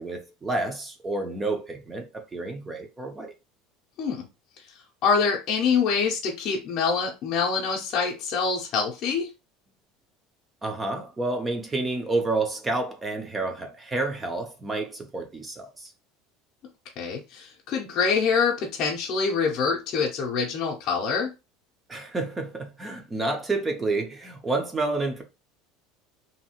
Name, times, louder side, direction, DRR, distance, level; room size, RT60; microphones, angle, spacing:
voice 1, 0.0-3.3 10.6-15.9 21.9-25.2, right 2 dB, 15° right, 0.4 m, -29 dB
voice 2, 5.0-9.3 17.0-21.3, left 5 dB, 40° left, 0.6 m, -25 dB
2.7 x 2.4 x 2.8 m
cardioid pair, 170°, 0 cm